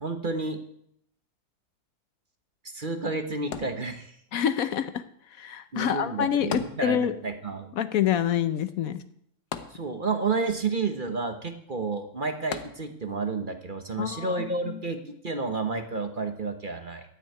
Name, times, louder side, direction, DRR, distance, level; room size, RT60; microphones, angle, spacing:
voice 1, 0.0-0.6 2.6-4.1 5.7-7.7 9.7-17.0, right 4 dB, 35° right, 6 dB, 1.1 m, -31 dB
sound 1, 3.5-4.4 6.5-7.4 7.7-7.8 9.5-10.3 12.5-13.2 13.9-14.0, left 7 dB, 90° left, 1.5 m, -38 dB
voice 2, 4.3-5.0 5.3-7.1 7.7-9.0 14.0-14.8, left 9 dB, 70° left, 12 dB, 1.1 m, -27 dB
12.5 x 6.5 x 9.1 m, 0.71 s
omnidirectional pair, 1.7 m